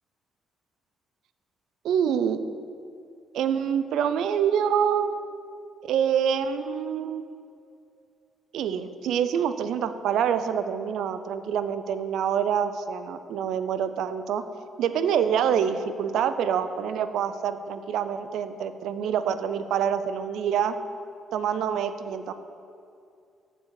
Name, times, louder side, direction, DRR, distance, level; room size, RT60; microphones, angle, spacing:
voice 1, 1.8-2.4 3.3-5.1 5.8-7.2 8.5-14.4 14.8-20.7 21.3-22.3, right 8 dB, 80° right, 11 dB, 0.4 m, -26 dB
7.1 x 6.8 x 4.7 m, 2.5 s
cardioid pair, 90°, 0 cm